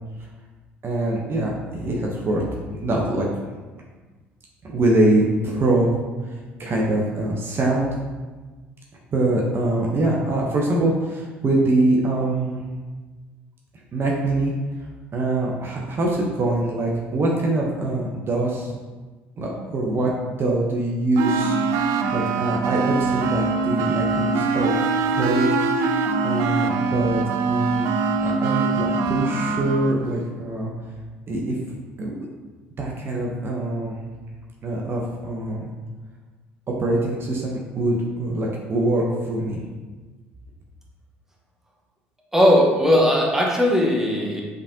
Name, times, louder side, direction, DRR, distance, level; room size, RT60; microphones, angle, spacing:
voice 1, 0.8-2.4 2.7-3.3 4.6-6.0 6.2-7.9 9.1-12.6 13.9-14.5 15.1-18.7 19.4-20.1 20.4-24.7 25.1-25.6 26.2-27.9 28.2-30.7 31.3-31.6 32.0-32.3 32.8-33.9 34.6-35.7 36.8-39.6, right 2 dB, 45° right, -2 dB, 0.8 m, -23 dB
sound 1, 21.2-30.0, right 4 dB, 70° right, 0.4 m, -23 dB
voice 2, 42.3-44.4, equal, 10° right, -2 dB, 1.1 m, -18 dB
5.1 x 3.6 x 2.8 m, 1.3 s
hypercardioid pair, 65°, 6 cm